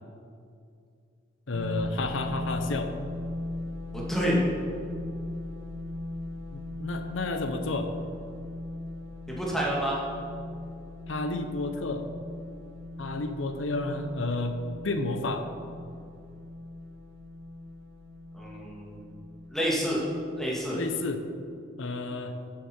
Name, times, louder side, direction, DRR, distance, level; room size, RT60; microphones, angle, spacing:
voice 1, 1.5-3.0 6.5-7.9 11.1-12.1 13.0-15.5 20.7-21.3 21.8-22.4, left 2 dB, 70° left, 7 dB, 0.8 m, -31 dB
sound 1, 1.5-21.1, left 1 dB, 70° right, 1.6 m, -39 dB
voice 2, 3.9-4.4 9.3-10.0 18.3-19.0 19.5-20.0 20.3-20.8, equal, ahead, -5 dB, 2.0 m, -28 dB
11.5 x 7.6 x 4.4 m, 2.4 s
head